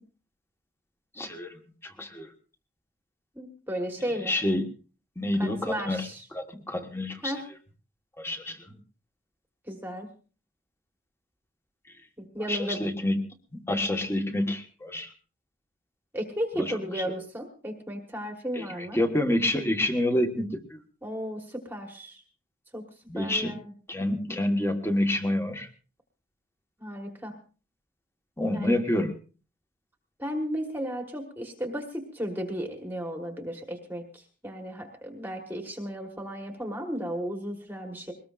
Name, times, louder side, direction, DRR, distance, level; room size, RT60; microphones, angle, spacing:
voice 1, 1.2-1.5 1.8-2.3 4.3-4.7 5.2-6.0 6.3-7.3 8.2-8.6 12.5-13.2 13.5-15.1 16.6-17.1 18.6-18.7 18.9-20.8 23.1-23.5 23.9-25.7 28.4-29.1, left 1 dB, 10° left, 5 dB, 1.4 m, -28 dB
voice 2, 3.3-4.3 5.4-6.3 7.2-7.5 9.7-10.1 12.2-12.8 16.1-19.0 21.0-22.2 22.7-22.8 23.1-23.7 26.8-27.4 28.5-28.8 30.2-38.1, equal, 10° right, 3 dB, 1.4 m, -34 dB
22.0 x 19.0 x 2.5 m, 0.37 s
head